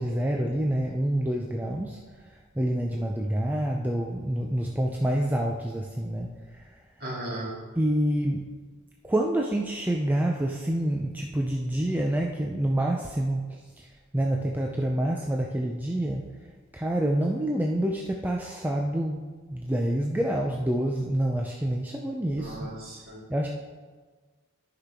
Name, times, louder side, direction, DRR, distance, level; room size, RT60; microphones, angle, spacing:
voice 1, 0.0-2.0 2.6-6.3 7.8-8.4 9.0-13.4 14.1-16.2 16.7-19.2 19.5-22.7 23.3-23.5, right 1 dB, 10° right, 0 dB, 0.4 m, -27 dB
voice 2, 7.0-7.5 22.4-23.2, right 1 dB, 45° right, -4 dB, 2.5 m, -36 dB
13.0 x 5.8 x 3.5 m, 1.4 s
head